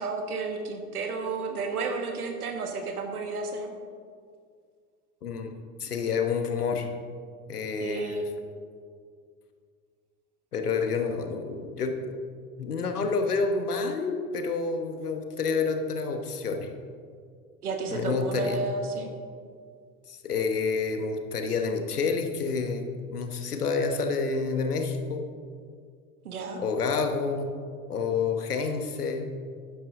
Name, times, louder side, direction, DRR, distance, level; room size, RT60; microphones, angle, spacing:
voice 1, 0.0-3.7 7.8-8.2 17.6-19.1 26.2-26.6, right 3 dB, 70° right, 5 dB, 1.6 m, -32 dB
voice 2, 5.8-6.9 7.5-8.2 10.5-12.2 12.6-16.7 17.9-18.6 20.1-22.8 23.1-25.2 26.6-27.5 27.9-29.3, left 4 dB, 80° left, 6 dB, 1.2 m, -28 dB
11.5 x 10.0 x 3.8 m, 2.1 s
figure-of-eight pair, 80°, 46 cm